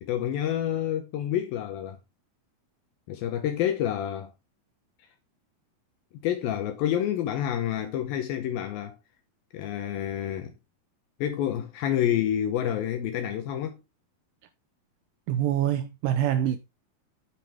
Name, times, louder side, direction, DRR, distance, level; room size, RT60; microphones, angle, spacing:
voice 1, 0.0-2.0 3.1-4.3 6.2-9.0 9.5-10.5 11.2-13.8, left 10 dB, 75° left, 2.5 m, -28 dB
voice 2, 15.3-16.6, right 11 dB, 80° right, 2.1 m, -25 dB
9.0 x 7.3 x 3.4 m
omnidirectional pair, 4.5 m